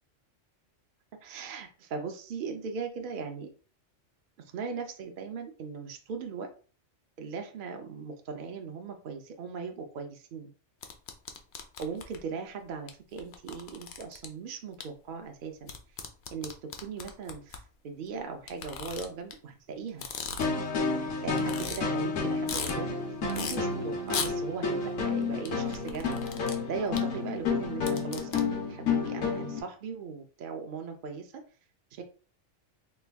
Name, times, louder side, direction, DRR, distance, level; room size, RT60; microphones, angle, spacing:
voice 1, 1.2-3.5 4.4-6.5 7.2-10.5 11.8-15.7 16.3-16.5 16.8-20.1 20.9-23.0 23.3-26.2 26.7-31.3 31.9-32.0, right 5 dB, 60° right, 4 dB, 0.6 m, -38 dB
sound 1, 10.8-12.2 12.9-13.0 13.2-14.3 14.8-14.9 15.7-17.6 18.5-19.3 19.9-20.7 21.0-21.1 21.4-21.8 22.2-22.7 23.3-23.6 24.1-24.3 25.5-26.6 27.0-27.1 27.6-28.4, left 6 dB, 65° left, 0.8 m, -37 dB
sound 2, 20.4-29.6, left 4 dB, 85° left, 1.2 m, -30 dB
3.3 x 2.3 x 3.3 m, 0.38 s
omnidirectional pair, 1.3 m